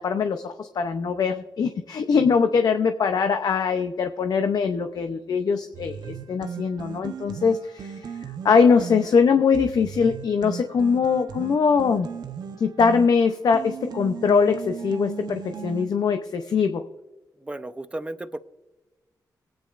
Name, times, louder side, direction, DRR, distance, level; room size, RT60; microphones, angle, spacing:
voice 1, 0.0-8.2 8.4-12.1 12.6-16.8, left 5 dB, 65° left, 7 dB, 0.6 m, -22 dB
sound 1, 5.7-15.9, right 6 dB, 70° right, 0.9 m, -37 dB
voice 2, 17.4-18.4, right 2 dB, 15° right, 10 dB, 0.7 m, -34 dB
23.0 x 8.9 x 2.5 m, 1.1 s
cardioid pair, 100°, 7 cm